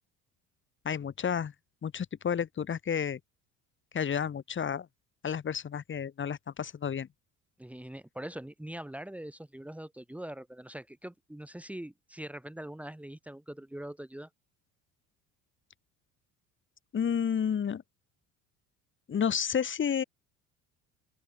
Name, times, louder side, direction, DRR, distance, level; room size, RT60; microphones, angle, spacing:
voice 1, 0.8-1.5 1.8-3.2 3.9-4.9 5.2-7.1 16.9-17.8 19.1-20.0, left 7 dB, 35° left, 4.9 m, -31 dB
voice 2, 7.6-14.3, right 1 dB, 5° right, 3.0 m, -43 dB
open air
cardioid pair, 120°, 34 cm